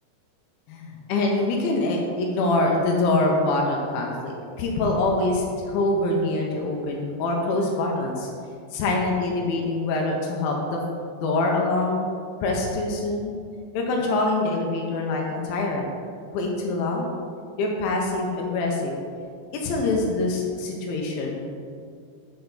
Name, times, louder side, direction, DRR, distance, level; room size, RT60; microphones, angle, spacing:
voice 1, 0.7-8.3 8.7-10.8 11.2-12.1 12.4-13.3 13.7-15.9 16.3-17.1 17.6-19.0 19.5-21.4, left 2 dB, 75° left, -1 dB, 2.4 m, -24 dB
6.8 x 6.6 x 3.9 m, 2.3 s
omnidirectional pair, 4.5 m